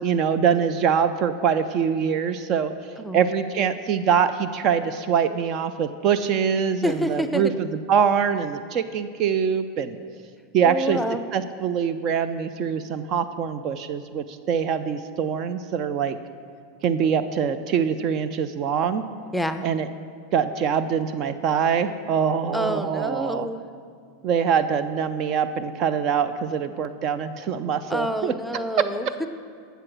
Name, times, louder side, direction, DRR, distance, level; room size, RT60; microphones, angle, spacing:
voice 1, 0.0-2.7 3.1-10.0 10.5-11.0 11.3-16.2 16.8-19.1 19.6-19.9 20.3-23.5 24.2-28.9, right 7 dB, 45° right, 12 dB, 0.5 m, -24 dB
voice 2, 6.8-7.4 10.6-11.2 19.3-19.7 22.5-23.6 27.9-29.3, equal, ahead, 9 dB, 0.6 m, -28 dB
12.0 x 6.9 x 6.1 m, 2.1 s
hypercardioid pair, 90°, 0 cm